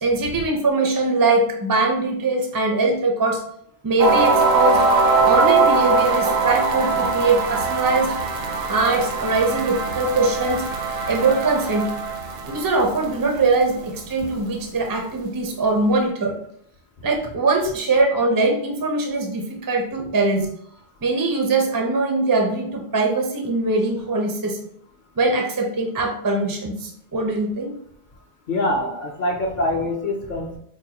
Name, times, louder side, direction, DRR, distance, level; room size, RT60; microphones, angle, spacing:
voice 1, 0.0-3.4 3.8-4.8 5.2-8.1 8.7-10.6 11.1-11.9 12.5-16.4 17.0-20.5 21.0-24.6 25.2-27.8, right 3 dB, 30° right, 2 dB, 0.4 m, -21 dB
sound 1, 4.0-13.9, right 4 dB, 65° right, 0.7 m, -21 dB
voice 2, 28.5-30.6, left 1 dB, 55° left, 0 dB, 0.6 m, -24 dB
4.6 x 2.2 x 2.8 m, 0.68 s
omnidirectional pair, 1.1 m